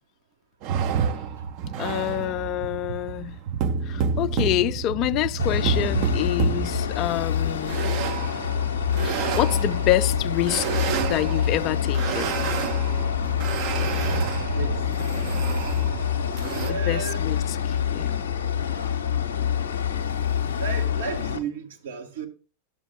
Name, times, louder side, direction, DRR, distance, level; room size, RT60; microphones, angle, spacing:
sound 1, 0.6-16.7, right 6 dB, 40° right, 0.6 m, -29 dB
voice 1, 1.8-3.4 3.8-7.8 9.0-12.3 16.7-18.2, left 15 dB, 40° left, 0.3 m, -27 dB
sound 2, 5.4-21.4, left 8 dB, 65° left, 0.7 m, -26 dB
voice 2, 16.7-17.3 20.6-22.3, right 6 dB, 65° right, 1.4 m, -33 dB
12.0 x 7.1 x 2.2 m
figure-of-eight pair, 90°, 0 cm